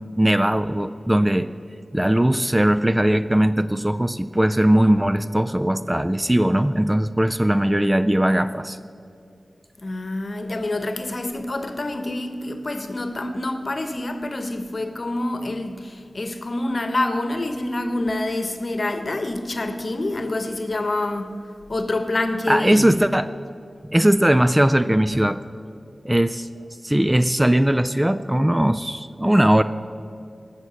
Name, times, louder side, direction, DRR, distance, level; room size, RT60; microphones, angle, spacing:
voice 1, 0.0-1.5 1.9-8.8 22.5-23.3 23.9-25.4 26.0-26.5 26.8-29.6, right 1 dB, 15° right, 0.4 m, -19 dB
voice 2, 9.8-21.4 21.7-22.9, left 2 dB, 50° left, 1.0 m, -27 dB
19.0 x 6.5 x 6.4 m
wide cardioid pair, 60°, 0 cm